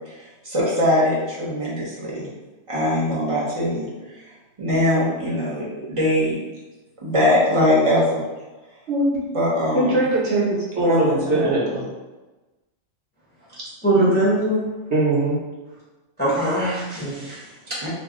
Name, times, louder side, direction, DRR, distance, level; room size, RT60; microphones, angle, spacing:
voice 1, 0.0-2.3 2.7-3.9 4.2-4.3 4.6-6.4 7.0-8.2 9.3-10.0 10.8-11.5 13.9-14.1 17.8-17.9, left 1 dB, 30° right, -6 dB, 0.8 m, -22 dB
voice 2, 8.9-9.2 9.7-10.5 10.7-11.8 14.9-15.4, right 2 dB, 60° right, -6 dB, 1.0 m, -20 dB
voice 3, 13.8-14.6 16.2-17.9, right 1 dB, 10° left, -9 dB, 0.6 m, -22 dB
2.6 x 2.3 x 3.6 m, 1.1 s
omnidirectional pair, 1.3 m